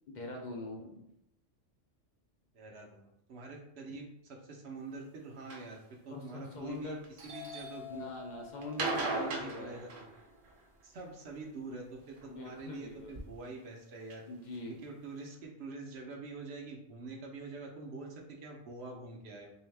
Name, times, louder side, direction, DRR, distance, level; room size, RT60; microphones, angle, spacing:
voice 1, 0.1-1.0 6.1-7.0 7.9-9.8 12.3-13.1 14.3-14.8, left 2 dB, 55° left, 0 dB, 0.5 m, -42 dB
voice 2, 2.5-8.1 8.8-9.9 10.8-14.2 14.7-19.5, right 3 dB, 65° right, 1 dB, 0.9 m, -45 dB
sound 1, 5.5-5.7 6.4-7.1 8.6-10.6 12.2-12.7 13.4-13.5 14.1-14.2 14.5-14.6 14.8-14.9, right 3 dB, 90° right, 1.0 m, -37 dB
Doorbell, 7.2-11.3 11.7-13.2, left 5 dB, 35° right, 0.7 m, -50 dB
3.4 x 2.7 x 3.2 m, 0.79 s
omnidirectional pair, 1.3 m